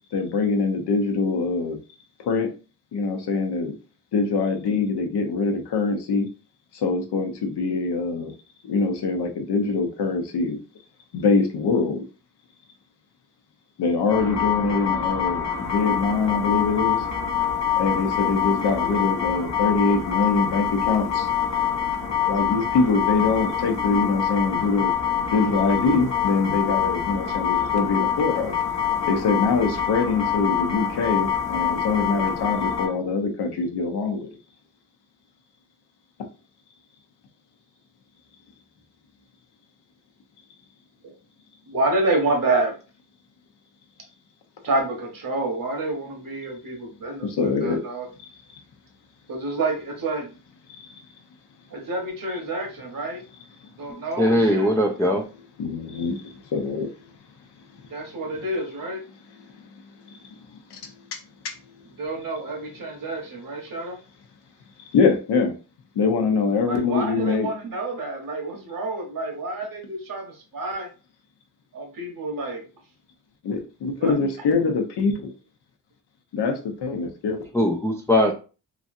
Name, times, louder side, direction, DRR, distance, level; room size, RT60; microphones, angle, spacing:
voice 1, 0.1-1.8 2.3-2.5 2.9-3.7 4.1-6.3 6.7-8.3 8.6-10.6 11.1-12.0 13.8-17.0 17.8-21.3 22.3-24.9 25.3-28.5 29.1-34.3 47.2-47.8 55.6-56.9 60.2-60.4 60.7-60.8 64.9-65.5 65.9-67.5 73.4-75.3 76.3-77.4, left 4 dB, 80° left, 0.8 m, -23 dB
sound 1, 14.1-32.9, left 8 dB, 45° left, 0.8 m, -25 dB
voice 2, 41.7-42.8 44.6-48.1 49.3-50.3 51.7-53.2 53.8-54.7 57.9-59.0 62.0-64.0 66.6-70.9 71.7-72.7 74.0-74.2, right 2 dB, 55° right, 1.2 m, -28 dB
voice 3, 54.2-55.2 77.5-78.3, left 1 dB, 10° left, 0.4 m, -20 dB
3.1 x 2.6 x 2.6 m
cardioid pair, 95°, 40 cm